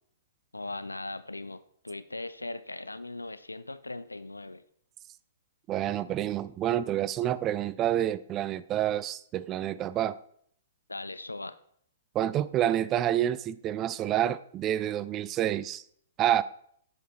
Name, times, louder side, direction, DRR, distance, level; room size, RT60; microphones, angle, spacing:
voice 1, 0.5-4.6 10.9-11.6, left 2 dB, 85° left, 0.5 m, -39 dB
voice 2, 5.7-10.2 12.1-15.8 16.2-16.4, right 11 dB, 25° right, 0.3 m, -28 dB
9.2 x 5.8 x 4.3 m
figure-of-eight pair, 115°, 0 cm